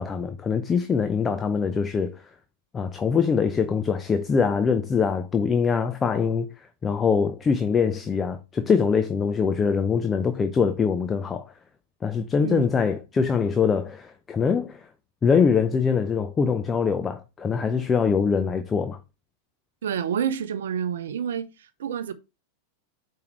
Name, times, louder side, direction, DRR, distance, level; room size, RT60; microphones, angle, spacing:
voice 1, 0.0-2.3 2.7-11.5 12.0-14.9 15.2-19.0, left 6 dB, 20° left, 0.7 m, -23 dB
voice 2, 19.8-22.1, right 8 dB, 65° right, 0.6 m, -28 dB
8.5 x 4.7 x 3.2 m
figure-of-eight pair, 90°, 0 cm